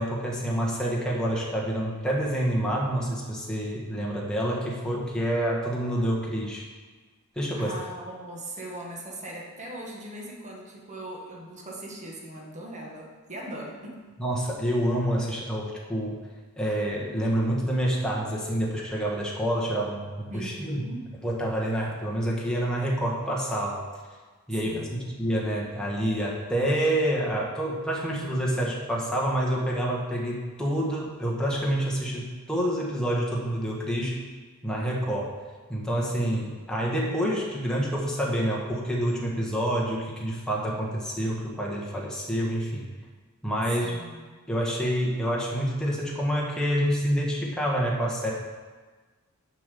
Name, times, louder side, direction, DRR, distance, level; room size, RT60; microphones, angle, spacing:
voice 1, 0.0-6.7 7.3-7.7 14.2-16.2 16.6-20.8 21.2-23.8 24.5-24.9 25.2-34.2 34.6-35.4 35.7-42.9 43.4-44.0 44.5-48.3, equal, 5° left, -4 dB, 1.3 m, -27 dB
voice 2, 7.5-14.0 20.3-21.0 24.6-25.1 43.8-44.3, right 1 dB, 35° right, -2 dB, 1.4 m, -40 dB
6.8 x 5.5 x 6.8 m, 1.4 s
head